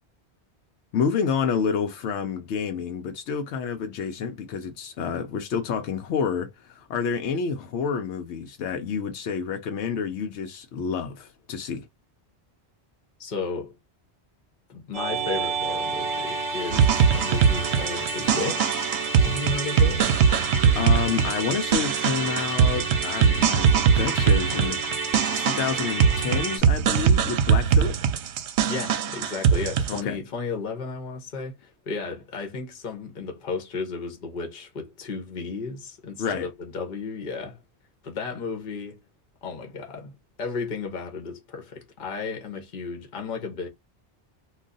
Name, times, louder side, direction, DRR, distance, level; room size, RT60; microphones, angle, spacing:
voice 1, 0.9-11.9 20.7-24.8 25.3-28.0 29.9-30.2 36.2-36.5, left 6 dB, 90° left, 0.9 m, -29 dB
voice 2, 13.2-13.7 14.7-19.0 19.2-20.1 28.6-37.6 38.0-39.0 39.4-43.7, left 4 dB, 50° left, 0.9 m, -34 dB
Musical instrument, 14.9-26.6, right 4 dB, 35° right, 0.8 m, -30 dB
sound 1, 16.7-30.0, right 7 dB, 85° right, 0.9 m, -22 dB
2.4 x 2.3 x 3.8 m
omnidirectional pair, 1.1 m